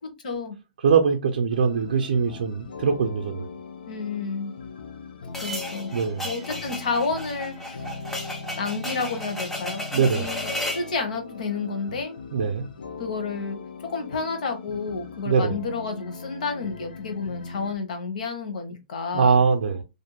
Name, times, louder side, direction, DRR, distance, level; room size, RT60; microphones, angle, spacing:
voice 1, 0.0-0.6 3.8-4.5 5.4-5.9 6.2-7.9 8.6-12.2 13.0-13.6 13.8-19.4, left 4 dB, 55° left, 0.8 m, -30 dB
voice 2, 0.8-3.5 5.9-6.2 9.9-10.3 12.3-12.7 15.3-15.6 19.1-19.8, right 6 dB, 70° right, 0.4 m, -22 dB
sound 1, 1.5-17.7, left 4 dB, 85° left, 0.5 m, -40 dB
sound 2, 5.3-10.9, left 1 dB, 5° left, 0.3 m, -34 dB
2.5 x 2.1 x 2.8 m
hypercardioid pair, 175°, 5 cm